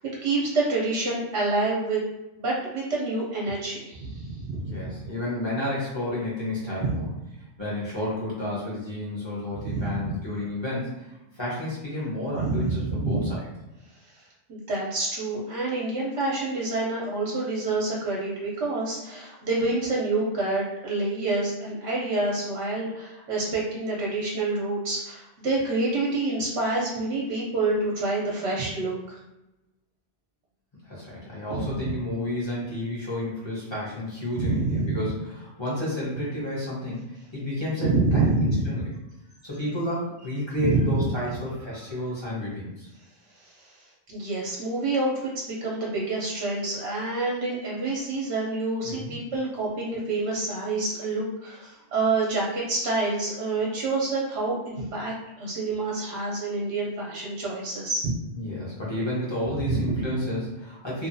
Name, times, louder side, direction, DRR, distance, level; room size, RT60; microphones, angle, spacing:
voice 1, 0.2-2.0 2.4-4.9 6.8-7.0 9.6-10.0 12.3-13.3 14.5-29.2 31.5-31.8 34.4-35.0 37.8-38.6 40.6-40.9 43.4-43.5 44.1-58.1 59.7-60.0, right 3 dB, 70° right, -4 dB, 0.9 m, -27 dB
voice 2, 4.6-7.1 7.6-11.1 11.3-13.4 30.8-35.1 35.4-38.8 39.4-42.9 48.8-49.1 58.3-61.1, left 1 dB, 25° left, -7 dB, 0.8 m, -31 dB
2.6 x 2.3 x 2.5 m, 0.95 s
omnidirectional pair, 1.2 m